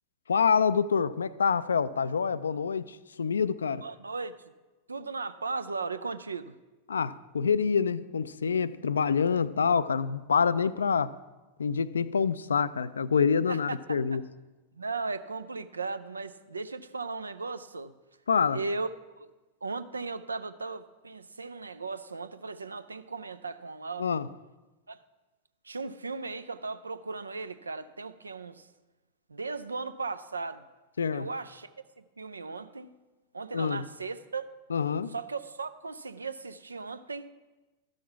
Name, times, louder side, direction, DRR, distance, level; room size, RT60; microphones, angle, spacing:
voice 1, 0.3-3.8 6.9-11.2 11.6-14.2 18.3-18.6 24.0-24.3 31.0-31.3 33.5-33.8 34.7-35.1, left 6 dB, 70° left, 0.3 m, -26 dB
voice 2, 3.8-4.3 4.9-6.5 13.5-14.0 14.7-17.9 18.5-18.9 19.2-19.3 19.6-24.1 24.9-25.0 25.6-28.7 29.3-30.6 31.1-31.7 32.0-32.9 33.3-34.5 35.1-37.3, right 4 dB, 75° right, 0.5 m, -37 dB
12.5 x 6.4 x 5.8 m
figure-of-eight pair, 90°, 0 cm